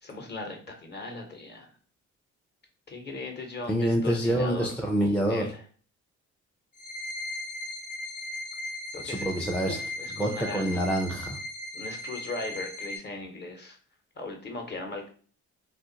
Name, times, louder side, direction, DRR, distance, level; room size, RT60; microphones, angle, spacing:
voice 1, 0.0-1.7 2.9-4.7 5.0-5.6 8.9-9.3 9.6-10.8 11.7-13.8 14.2-15.1, left 3 dB, 35° left, 3 dB, 0.9 m, -38 dB
voice 2, 3.7-5.4 9.0-9.8 10.2-11.4, right 1 dB, 5° left, 0 dB, 0.4 m, -26 dB
sound 1, 6.7-13.0, left 1 dB, 80° left, 1.0 m, -37 dB
2.4 x 2.4 x 3.8 m, 0.43 s
cardioid pair, 90°, 30 cm